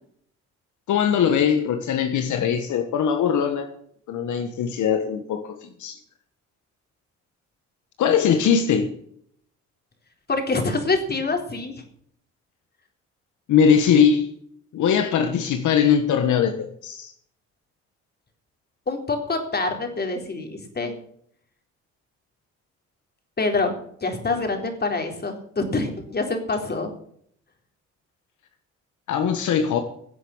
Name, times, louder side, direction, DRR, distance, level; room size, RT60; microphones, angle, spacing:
voice 1, 0.9-3.7 4.1-6.0 8.0-8.9 13.5-14.3 14.7-17.1 29.1-29.8, left 7 dB, 75° left, 7 dB, 1.5 m, -21 dB
voice 2, 10.3-11.8 18.9-20.9 23.4-26.9, left 3 dB, 35° left, 4 dB, 3.9 m, -26 dB
17.0 x 8.3 x 7.3 m, 0.66 s
cardioid pair, 90°, 30 cm